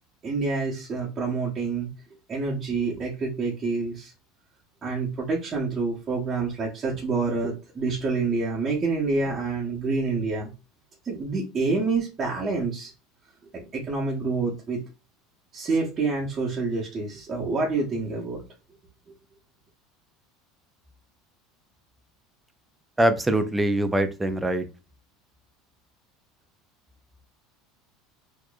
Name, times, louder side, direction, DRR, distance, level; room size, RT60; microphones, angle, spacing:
voice 1, 0.2-1.9 2.3-4.1 4.8-10.5 11.0-12.9 13.5-14.8 15.5-18.4, right 4 dB, 25° right, 1.1 m, -27 dB
voice 2, 23.0-24.7, right 1 dB, 10° right, 0.5 m, -23 dB
4.4 x 3.0 x 2.4 m
supercardioid pair, 135°, 0 cm